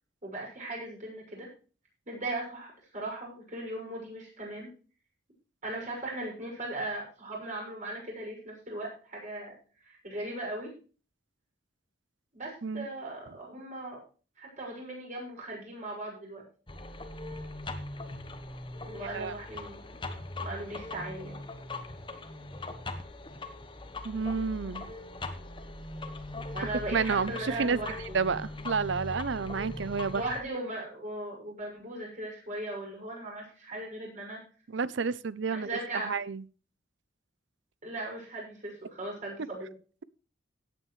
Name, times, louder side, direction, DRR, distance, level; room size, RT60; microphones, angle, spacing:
voice 1, 0.2-1.5 2.1-4.7 5.6-9.5 9.8-10.7 12.3-14.0 14.4-16.4 18.8-19.8 20.4-21.4 26.5-28.2 30.1-34.4 35.5-36.1 37.8-39.7, right 1 dB, 40° right, -1 dB, 6.3 m, -38 dB
sound 1, 16.7-30.4, left 2 dB, 25° left, 1.1 m, -40 dB
voice 2, 19.0-19.4 24.0-24.9 26.9-30.2 34.7-36.4, right 5 dB, 60° right, 19 dB, 0.6 m, -30 dB
17.0 x 8.8 x 3.2 m, 0.37 s
head